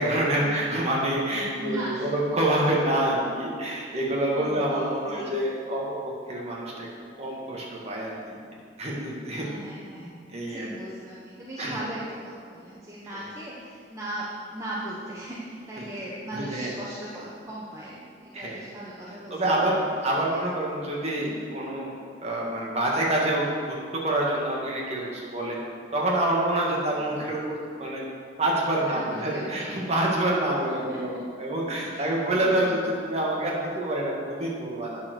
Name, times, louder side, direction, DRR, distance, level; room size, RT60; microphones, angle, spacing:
voice 1, 0.0-6.9 7.2-8.4 8.8-9.5 10.0-10.1 10.3-10.7 11.6-11.7 15.8-15.9 16.3-16.7 18.3-18.6 19.3-21.9 22.2-25.6 25.9-28.1 28.4-35.0, right 1 dB, 35° right, -3 dB, 2.0 m, -27 dB
voice 2, 1.6-2.1 3.9-5.4 9.4-10.2 10.5-19.6 20.3-20.4 21.2-21.4 26.9-27.2 28.8-29.7 30.7-31.2 31.9-32.1 32.3-32.9, right 1 dB, 15° right, -7 dB, 1.2 m, -38 dB
9.4 x 7.0 x 6.2 m, 2.2 s
head